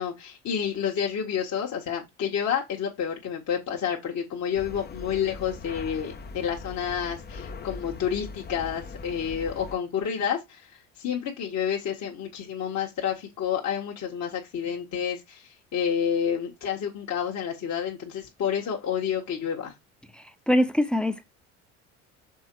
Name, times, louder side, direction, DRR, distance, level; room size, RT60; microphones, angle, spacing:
voice 1, 0.0-19.7, left 8 dB, 45° left, 1.7 m, -29 dB
sound 1, 4.6-9.8, left 4 dB, 25° left, 0.9 m, -40 dB
voice 2, 20.1-21.3, equal, ahead, 0.9 m, -24 dB
6.4 x 3.7 x 4.6 m
hypercardioid pair, 70°, 38 cm